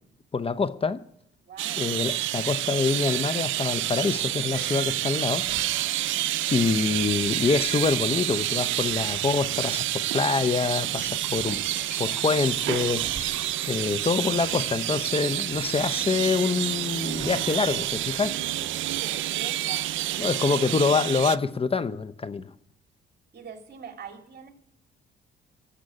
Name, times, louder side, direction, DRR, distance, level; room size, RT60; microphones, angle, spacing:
voice 1, 0.3-1.0 1.8-5.9 6.5-11.6 12.0-13.1 13.7-18.4 20.2-22.5, left 4 dB, 30° left, 13 dB, 0.7 m, -26 dB
voice 2, 1.4-1.9 18.9-20.6 23.3-24.5, right 6 dB, 55° right, 3 dB, 3.0 m, -43 dB
sound 1, 1.6-21.4, right 14 dB, 80° right, 0.5 m, -28 dB
sound 2, 3.8-19.0, right 3 dB, 30° right, 3.4 m, -50 dB
Liquid, 10.8-21.0, right 1 dB, 5° right, 5.6 m, -44 dB
18.5 x 7.6 x 8.6 m, 0.72 s
cardioid pair, 90°, 20 cm